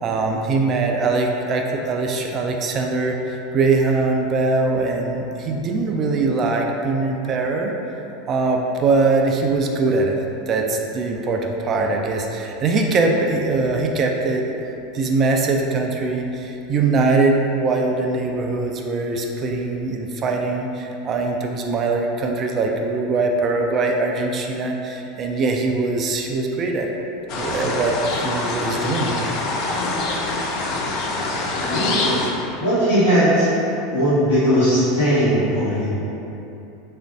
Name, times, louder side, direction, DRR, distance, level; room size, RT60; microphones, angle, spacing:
voice 1, 0.0-7.7 8.3-10.2 10.5-14.5 14.9-26.9 27.3-29.4, right 3 dB, 35° right, 2 dB, 0.3 m, -22 dB
sound 1, 27.3-32.3, left 2 dB, 45° left, 0.4 m, -25 dB
voice 2, 31.5-32.2 32.6-33.5 33.9-35.9, equal, 70° left, -14 dB, 1.0 m, -18 dB
3.6 x 2.5 x 3.5 m, 2.9 s
figure-of-eight pair, 80°, 0 cm